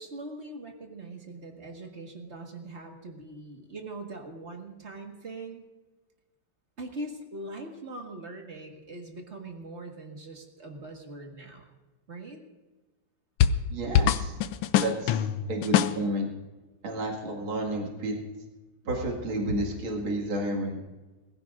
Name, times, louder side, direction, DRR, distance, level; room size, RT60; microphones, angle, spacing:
voice 1, 0.0-5.7 6.8-11.6 12.1-12.4, right 2 dB, 35° right, 2 dB, 1.8 m, -41 dB
sound 1, 13.4-13.7 13.9-16.0, left 9 dB, 85° left, 1.5 m, -23 dB
voice 2, 13.7-14.4 14.8-16.3 16.8-18.4 18.8-20.8, right 1 dB, 75° right, -1 dB, 2.9 m, -31 dB
22.0 x 15.5 x 2.6 m, 1.2 s
omnidirectional pair, 2.3 m